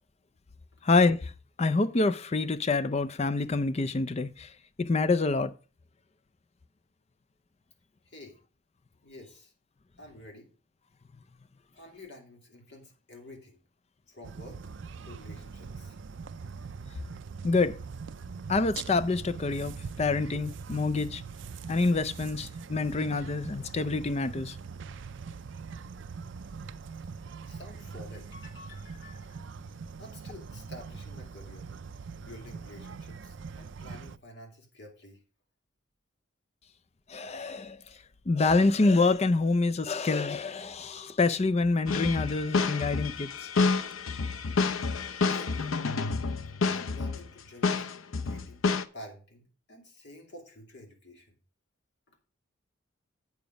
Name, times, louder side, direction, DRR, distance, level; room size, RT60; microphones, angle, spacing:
voice 1, 0.8-1.3 1.6-4.5 4.8-5.5 17.4-17.8 18.5-21.2 21.7-24.6 37.1-37.8 38.3-43.3, left 3 dB, 30° left, 0.5 m, -26 dB
voice 2, 8.1-8.4 9.0-9.5 10.0-10.5 11.7-13.6 14.1-14.6 15.0-16.0 27.5-29.6 30.0-31.7 32.2-35.2 45.3-45.7 46.7-47.9 48.1-48.6 48.9-51.3, left 1 dB, 55° left, 2.6 m, -49 dB
sound 1, 14.2-34.2, right 5 dB, 65° right, 0.5 m, -42 dB
sound 2, 41.9-47.3 47.6-48.8, left 4 dB, 90° left, 0.7 m, -29 dB
8.1 x 7.0 x 5.1 m
head